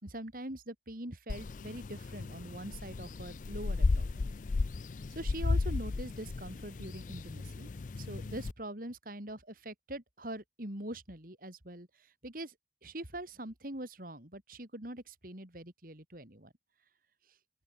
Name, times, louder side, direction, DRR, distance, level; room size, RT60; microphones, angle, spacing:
voice 1, 0.0-4.3 5.1-7.7 8.0-11.9 12.2-12.5 12.8-16.5, right 1 dB, 50° right, 4.2 m, -43 dB
sound 1, 1.3-8.5, left 3 dB, 45° left, 0.4 m, -34 dB
open air
head